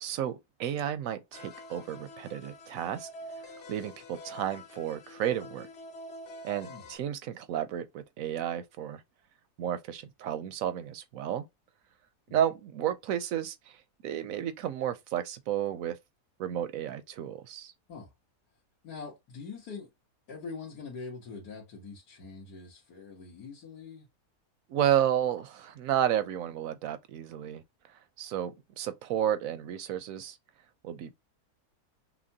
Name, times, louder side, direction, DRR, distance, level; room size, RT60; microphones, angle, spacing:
voice 1, 0.0-3.1 3.7-5.7 6.4-9.0 9.6-11.4 12.3-13.8 14.0-16.0 16.4-17.7 24.7-27.6 28.2-30.4 30.8-31.1, right 10 dB, 70° right, 0.9 m, -32 dB
sound 1, 1.3-7.0, left 1 dB, 55° left, 0.9 m, -46 dB
voice 2, 18.8-19.9 20.3-24.1, left 4 dB, 80° left, 1.8 m, -43 dB
5.8 x 2.2 x 2.7 m
omnidirectional pair, 1.7 m